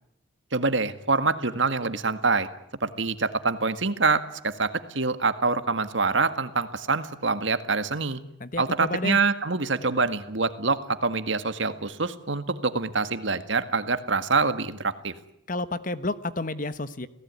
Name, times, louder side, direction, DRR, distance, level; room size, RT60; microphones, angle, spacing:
voice 1, 0.5-2.5 2.8-8.2 8.6-15.2, right 4 dB, 65° right, 11 dB, 1.8 m, -25 dB
voice 2, 8.4-9.2 15.5-17.1, left 2 dB, 40° left, 14 dB, 1.3 m, -30 dB
29.0 x 18.0 x 9.7 m, 0.80 s
head